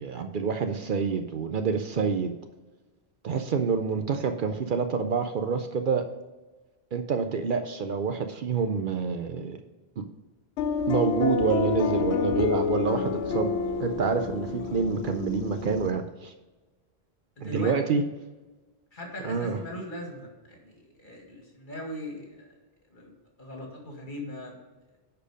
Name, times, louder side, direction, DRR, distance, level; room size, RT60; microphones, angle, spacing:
voice 1, 0.0-2.3 3.2-6.0 6.9-9.6 10.0-10.1 10.9-13.5 13.8-16.3 17.4-18.0 19.2-19.6, right 5 dB, 60° right, 7 dB, 0.7 m, -27 dB
sound 1, 10.6-15.9, left 5 dB, 90° left, 0.8 m, -28 dB
voice 2, 17.4-17.7 18.9-22.5 22.9-23.1 23.4-24.6, left 1 dB, 50° left, 0 dB, 2.1 m, -39 dB
10.0 x 4.6 x 4.9 m, 1.2 s
omnidirectional pair, 1.1 m